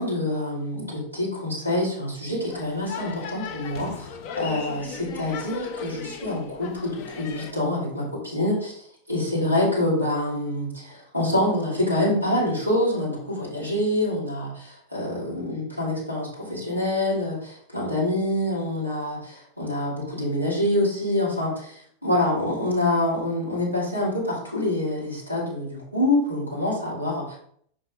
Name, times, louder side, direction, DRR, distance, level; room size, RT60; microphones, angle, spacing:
voice 1, 0.0-4.1 4.4-8.8 9.1-27.4, left 1 dB, 90° left, -6 dB, 2.8 m, -26 dB
sound 1, 2.5-7.5, left 6 dB, 45° left, 0.7 m, -37 dB
6.2 x 5.0 x 3.7 m, 0.62 s
figure-of-eight pair, 90°, 0 cm